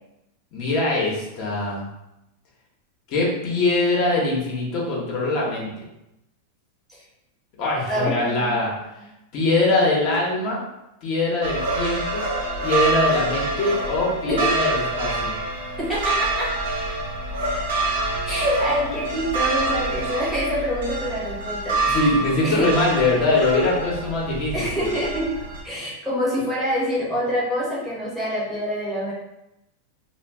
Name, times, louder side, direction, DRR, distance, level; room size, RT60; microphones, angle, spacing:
voice 1, 0.5-1.8 3.1-5.7 7.6-8.7 9.3-10.6 11.0-12.3 12.6-15.3 21.9-24.6, left 2 dB, 45° left, -4 dB, 0.8 m, -22 dB
voice 2, 7.9-8.5 14.3-14.5 15.8-16.5 18.3-22.0 22.4-22.7 24.5-25.3 25.6-29.1, equal, 5° right, -8 dB, 0.8 m, -26 dB
sound 1, 11.4-25.6, right 2 dB, 85° right, 0.7 m, -26 dB
2.2 x 2.2 x 3.3 m, 0.88 s
supercardioid pair, 145°, 0 cm